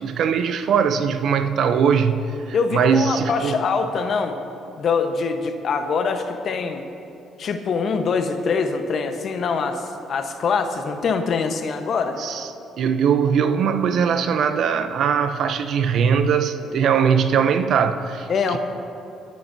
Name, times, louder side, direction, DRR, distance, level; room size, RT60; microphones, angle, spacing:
voice 1, 0.0-3.6 12.2-12.5 12.8-18.6, right 7 dB, 65° right, 10 dB, 0.7 m, -21 dB
voice 2, 2.5-4.4 4.8-6.9 7.4-12.2 18.3-18.6, left 5 dB, 60° left, 6 dB, 1.1 m, -24 dB
28.5 x 10.0 x 2.8 m, 2.7 s
supercardioid pair, 60°, 0 cm